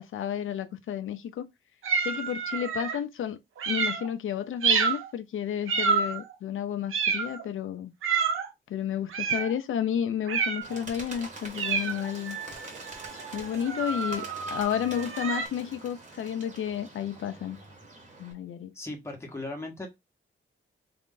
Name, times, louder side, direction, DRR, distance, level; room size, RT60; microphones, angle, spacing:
voice 1, 0.0-1.5 2.0-3.4 3.7-7.9 8.7-12.4 13.3-17.6 18.2-18.7, left 9 dB, 80° left, 0.5 m, -31 dB
sound 1, 1.8-3.0 3.6-4.1 4.6-5.1 5.7-6.3 6.9-7.4 8.0-8.5 9.1-9.5 10.3-10.8 11.5-15.5, right 5 dB, 90° right, 0.7 m, -29 dB
Bird, 10.6-18.3, right 2 dB, 35° right, 1.2 m, -45 dB
voice 2, 18.7-19.9, left 2 dB, 15° left, 1.1 m, -37 dB
3.8 x 2.6 x 3.7 m
wide cardioid pair, 170°, 21 cm